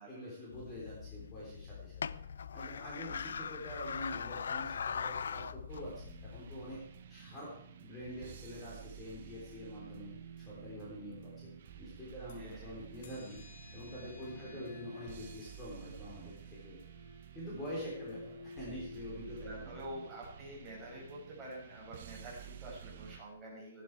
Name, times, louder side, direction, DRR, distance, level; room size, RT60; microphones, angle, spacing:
voice 1, 0.1-2.2 2.5-6.8 7.1-13.4 13.7-16.8 17.3-19.8, equal, 15° left, -6 dB, 3.7 m, -46 dB
sound 1, 0.5-6.8, left 6 dB, 80° left, 0.6 m, -41 dB
sound 2, 5.7-23.2, right 9 dB, 50° right, 1.4 m, -52 dB
sound 3, 8.5-12.5 12.9-19.6, left 3 dB, 50° left, 3.0 m, -53 dB
voice 2, 12.4-12.7 14.3-14.6 19.4-23.8, right 1 dB, 10° right, -7 dB, 6.4 m, -48 dB
15.0 x 12.0 x 4.7 m, 0.70 s
hypercardioid pair, 165°, 0 cm